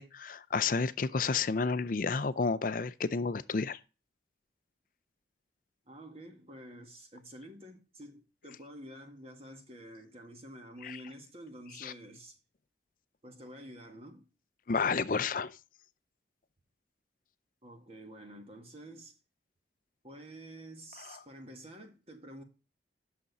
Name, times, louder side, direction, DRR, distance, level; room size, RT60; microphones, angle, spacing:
voice 1, 0.0-3.8 10.8-11.0 11.8-11.9 14.7-15.6 21.0-21.2, left 4 dB, 45° left, 0.5 m, -31 dB
voice 2, 5.9-12.4 13.2-14.3 17.6-19.2 20.0-22.4, right 1 dB, 30° right, 1.8 m, -49 dB
8.9 x 6.7 x 4.0 m
head